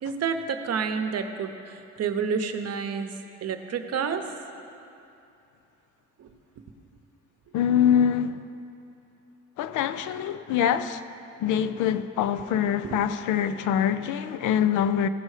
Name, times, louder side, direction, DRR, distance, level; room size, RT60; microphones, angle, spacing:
voice 1, 0.0-3.1 3.4-4.2 6.2-6.3 12.8-13.0, right 6 dB, 55° right, 0.8 m, -29 dB
voice 2, 7.5-8.4 9.6-11.0 11.4-15.1, left 9 dB, 85° left, 0.5 m, -24 dB
15.5 x 5.4 x 4.8 m
cardioid pair, 90°, 30 cm